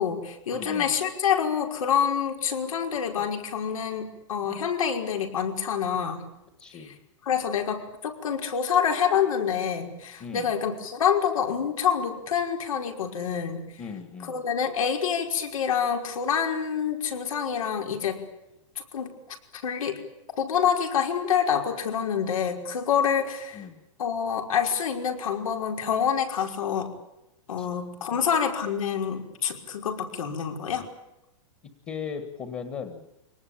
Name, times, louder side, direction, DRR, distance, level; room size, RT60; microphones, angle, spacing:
voice 1, 0.0-6.2 7.3-13.7 14.3-18.2 18.8-19.1 19.5-20.0 20.4-23.6 24.0-26.9 27.5-30.9, left 7 dB, 85° left, 3 dB, 5.4 m, -27 dB
voice 2, 0.5-0.9 4.4-4.6 6.6-7.0 10.2-10.5 13.8-14.4 23.5-23.8 27.6-27.8 28.1-28.2 31.9-33.1, left 6 dB, 15° left, 7 dB, 1.7 m, -38 dB
24.5 x 19.0 x 9.0 m, 0.90 s
supercardioid pair, 175°, 17 cm